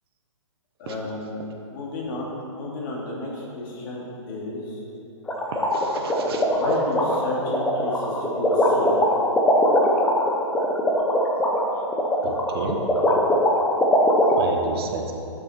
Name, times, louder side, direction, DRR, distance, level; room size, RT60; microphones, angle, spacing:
voice 1, 0.8-4.8 6.5-8.9 14.6-14.8, left 2 dB, 40° left, -3 dB, 2.4 m, -33 dB
sound 1, 5.3-14.4, left 1 dB, 5° left, 0.8 m, -20 dB
voice 2, 5.5-6.5 12.2-12.8 14.3-15.1, right 5 dB, 50° right, 4 dB, 0.9 m, -31 dB
11.0 x 6.6 x 4.3 m, 2.6 s
hypercardioid pair, 145°, 17 cm